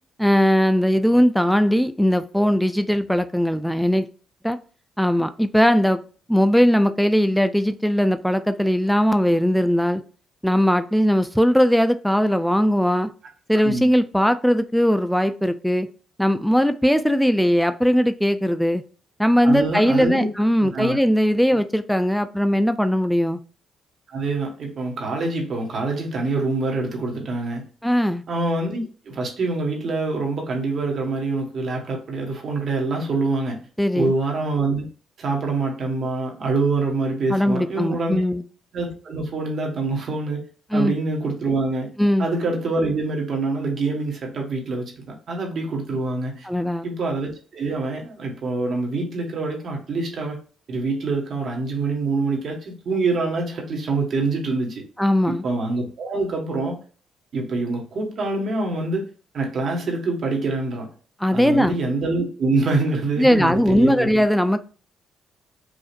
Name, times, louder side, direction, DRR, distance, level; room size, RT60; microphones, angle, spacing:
voice 1, 0.2-4.1 4.4-4.6 5.0-6.0 6.3-10.0 10.4-13.1 13.5-15.9 16.2-18.8 19.2-23.4 27.8-28.2 33.8-34.1 37.3-38.4 40.7-40.9 42.0-42.3 46.5-46.9 55.0-55.4 61.2-61.7 63.2-64.6, equal, ahead, 0.4 m, -19 dB
voice 2, 19.4-20.3 20.6-21.0 24.1-27.6 28.3-33.6 33.9-34.8 35.2-38.2 38.7-40.4 40.7-41.9 42.2-46.5 46.8-50.4 50.7-54.8 55.3-56.8 57.3-59.1 59.3-60.9 61.3-64.1, right 3 dB, 55° right, 1.5 m, -25 dB
5.0 x 2.4 x 2.5 m
cardioid pair, 90°, 0 cm